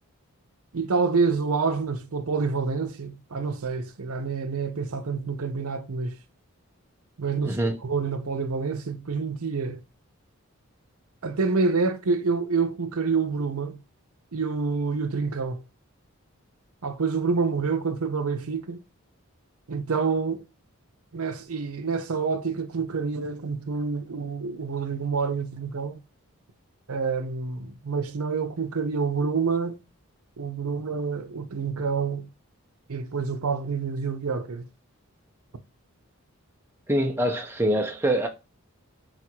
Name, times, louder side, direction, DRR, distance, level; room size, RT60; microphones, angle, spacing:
voice 1, 0.7-6.1 7.2-7.6 7.8-9.8 11.2-13.8 14.3-15.6 16.8-18.8 19.7-20.4 21.1-26.0 26.9-29.8 30.4-32.3 32.9-34.7, right 4 dB, 80° right, 0.6 m, -27 dB
voice 2, 7.4-7.8 36.9-38.3, right 1 dB, 10° right, 0.5 m, -24 dB
3.9 x 2.5 x 4.4 m
head